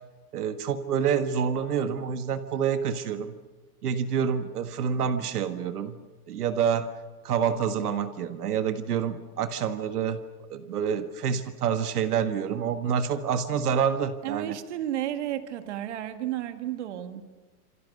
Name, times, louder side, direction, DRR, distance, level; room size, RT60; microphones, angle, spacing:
voice 1, 0.3-3.3 3.8-6.0 6.3-7.0 7.2-10.2 10.5-14.6, right 7 dB, 80° right, 9 dB, 1.7 m, -27 dB
voice 2, 14.2-17.2, right 12 dB, 50° right, 8 dB, 1.9 m, -32 dB
27.5 x 26.5 x 6.6 m, 1.3 s
supercardioid pair, 175°, 45 cm